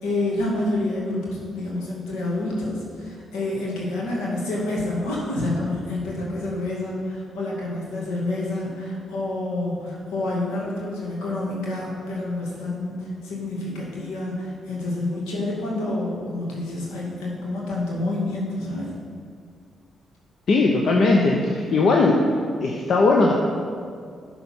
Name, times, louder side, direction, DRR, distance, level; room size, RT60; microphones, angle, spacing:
voice 1, 0.0-18.9, left 2 dB, 85° left, -4 dB, 2.1 m, -28 dB
voice 2, 20.5-22.2 22.6-23.3, left 3 dB, 65° left, 0 dB, 0.8 m, -18 dB
11.5 x 4.2 x 5.8 m, 2.2 s
hypercardioid pair, 50°, 0 cm